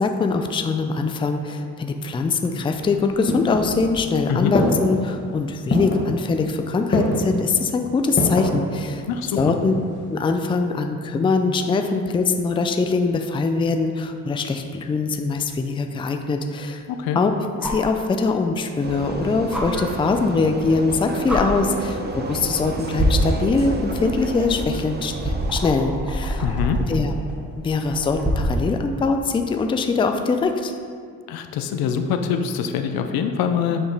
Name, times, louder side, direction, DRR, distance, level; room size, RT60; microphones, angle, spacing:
voice 1, 0.0-9.0 9.4-9.7 10.1-16.8 17.2-17.3 17.6-26.4 26.9-27.1 27.6-30.7, left 4 dB, 15° left, 5 dB, 0.3 m, -22 dB
sound 1, 2.7-4.1 4.5-5.1 5.7-6.1 6.9-7.4 8.2-8.6 9.1-9.7 10.0-10.1, left 2 dB, 30° left, 1.3 m, -23 dB
voice 2, 9.1-9.6 16.9-17.2 26.4-26.8 31.3-33.9, left 7 dB, 80° left, 7 dB, 0.6 m, -24 dB
sound 2, 15.4-15.5 17.6-17.9 19.5-19.6 20.8-20.9 21.3-21.4 22.3-22.6 23.0-28.6 30.3-30.4, equal, 5° right, 1.1 m, -26 dB
Vehicle, 18.8-25.7, right 3 dB, 30° right, 0.6 m, -31 dB
6.5 x 2.9 x 5.2 m, 2.1 s
cardioid pair, 85°, 35 cm